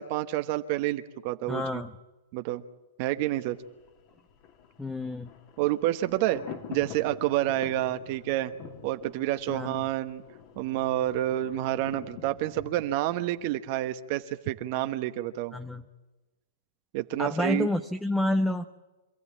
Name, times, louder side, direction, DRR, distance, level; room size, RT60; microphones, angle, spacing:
voice 1, 0.0-1.8 2.3-2.6 3.0-3.6 5.6-6.4 6.7-8.5 8.8-10.2 10.6-15.5 16.9-17.7, right 14 dB, 50° right, 8 dB, 1.1 m, -29 dB
voice 2, 1.5-1.9 4.8-5.3 9.5-9.9 15.5-15.9 17.2-18.7, left 1 dB, 5° left, 9 dB, 0.8 m, -29 dB
Thunder, 3.4-14.3 14.6-14.7, left 8 dB, 40° left, 2.4 m, -47 dB
26.0 x 15.0 x 8.6 m, 1.2 s
hypercardioid pair, 130°, 0 cm